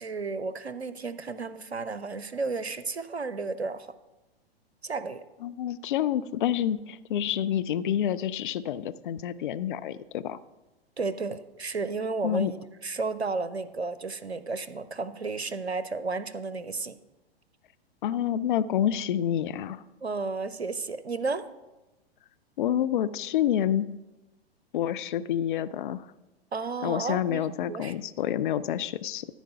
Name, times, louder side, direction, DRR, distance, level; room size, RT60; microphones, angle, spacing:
voice 1, 0.0-3.9 4.8-5.2 11.0-12.6 12.8-17.0 20.0-21.5 26.5-27.9, right 4 dB, 90° right, 14 dB, 0.6 m, -32 dB
voice 2, 5.4-10.4 12.2-12.5 18.0-19.8 22.6-23.9 24.7-26.1 26.8-29.3, left 10 dB, 55° left, 14 dB, 0.5 m, -28 dB
13.5 x 4.6 x 5.6 m, 1.0 s
figure-of-eight pair, 105°, 31 cm